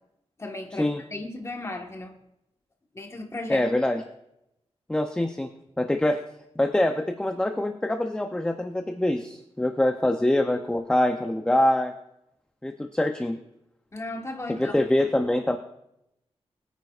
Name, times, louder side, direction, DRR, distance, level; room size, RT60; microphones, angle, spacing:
voice 1, 0.4-2.1 2.9-3.6 13.9-14.8, left 2 dB, 25° left, 3 dB, 1.4 m, -35 dB
voice 2, 3.5-4.0 4.9-5.5 5.8-6.2 6.6-11.9 12.6-13.4 14.5-15.6, left 1 dB, 10° left, 6 dB, 0.5 m, -24 dB
22.0 x 9.3 x 2.4 m, 0.85 s
wide cardioid pair, 155°, 11 cm